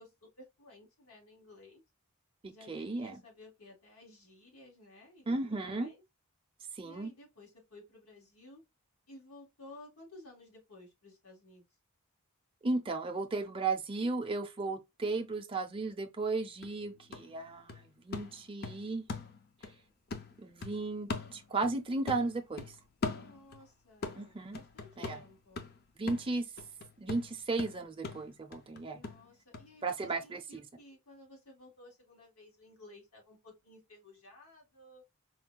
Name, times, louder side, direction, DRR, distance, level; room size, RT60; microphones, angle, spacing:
voice 1, 0.0-1.8 2.5-6.0 6.8-8.6 9.1-11.6 23.0-25.7 28.9-35.0, left 2 dB, 85° left, 2.0 m, -56 dB
voice 2, 2.4-3.2 5.3-5.9 6.7-7.1 12.6-19.1 20.4-22.7 24.2-24.6 25.0-25.2 26.0-26.4 27.0-29.0 29.8-30.6, right 3 dB, 25° right, 0.5 m, -35 dB
sound 1, 16.2-16.3 16.6-19.8 20.1-21.8 22.1-23.7 24.0-29.7 30.0-30.1, left 3 dB, 45° left, 0.5 m, -41 dB
4.5 x 2.2 x 2.2 m
head